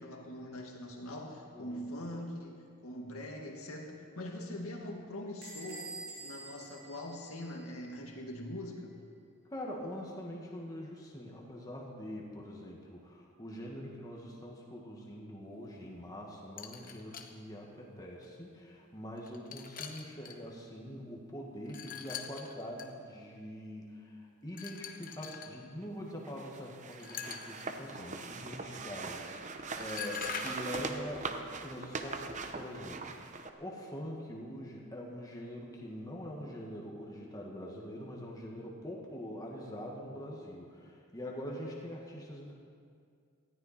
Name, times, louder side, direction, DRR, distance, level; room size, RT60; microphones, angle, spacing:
voice 1, 0.0-2.6 2.8-9.0, left 1 dB, 75° left, 1 dB, 2.0 m, -42 dB
voice 2, 1.5-1.9 9.5-42.5, equal, 15° left, -3 dB, 1.9 m, -44 dB
Bell / Door, 5.4-7.9, right 3 dB, 85° right, 4.0 m, -47 dB
sound 1, 16.6-17.3 18.2-18.3 19.2-20.4 21.7-22.9 24.5-25.5 26.9-27.6 29.4-29.5 29.8-30.9, left 7 dB, 40° left, 0.9 m, -43 dB
sound 2, 26.2-33.5, right 4 dB, 35° right, 0.7 m, -41 dB
19.0 x 14.0 x 4.4 m, 2.2 s
head